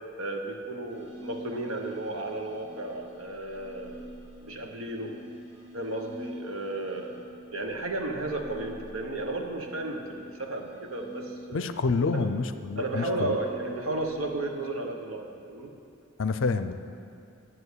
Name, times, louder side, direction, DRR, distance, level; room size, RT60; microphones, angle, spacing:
voice 1, 0.2-4.0 4.4-5.1 5.7-7.2 7.5-11.7 12.1-12.3 12.8-15.7, right 2 dB, 75° right, 2 dB, 1.2 m, -33 dB
sound 1, 0.9-14.9, equal, 30° right, 2.1 m, -47 dB
voice 2, 11.5-13.4 16.2-16.7, left 4 dB, 65° left, 10 dB, 0.5 m, -28 dB
9.5 x 7.6 x 8.2 m, 2.5 s
head